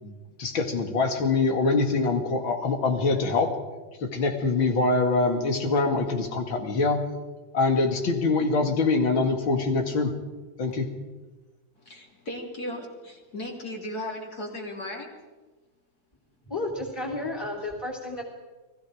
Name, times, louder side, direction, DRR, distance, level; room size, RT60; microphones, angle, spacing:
voice 1, 0.4-3.6 4.0-7.0 7.5-10.1 10.6-10.9, left 3 dB, 85° left, 4 dB, 3.0 m, -24 dB
voice 2, 11.8-15.1, left 1 dB, 50° left, 0 dB, 3.8 m, -36 dB
voice 3, 16.4-18.2, left 2 dB, 10° left, 0 dB, 2.8 m, -32 dB
30.0 x 20.0 x 5.0 m, 1.3 s
omnidirectional pair, 2.1 m